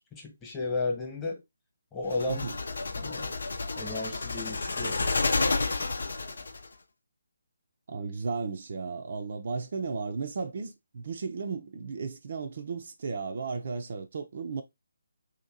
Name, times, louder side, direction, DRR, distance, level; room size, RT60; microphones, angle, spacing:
voice 1, 0.1-1.4 1.9-2.5 3.0-3.3 3.7-5.0, left 3 dB, 15° left, 1.1 m, -33 dB
sound 1, 2.1-6.7, left 3 dB, 70° left, 0.6 m, -30 dB
voice 2, 7.9-14.6, right 4 dB, 50° right, 0.5 m, -35 dB
2.9 x 2.8 x 3.8 m
figure-of-eight pair, 150°, 0 cm